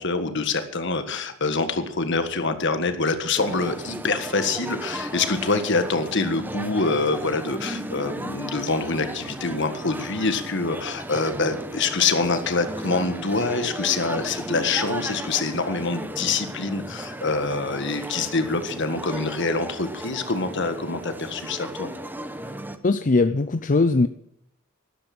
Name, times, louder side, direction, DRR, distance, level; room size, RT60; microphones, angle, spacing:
voice 1, 0.0-21.9, left 3 dB, 60° left, 9 dB, 1.7 m, -25 dB
sound 1, 3.4-22.8, right 1 dB, 10° right, 0.9 m, -35 dB
voice 2, 22.8-24.1, left 3 dB, 40° left, 10 dB, 0.5 m, -20 dB
13.0 x 12.0 x 6.1 m, 0.72 s
head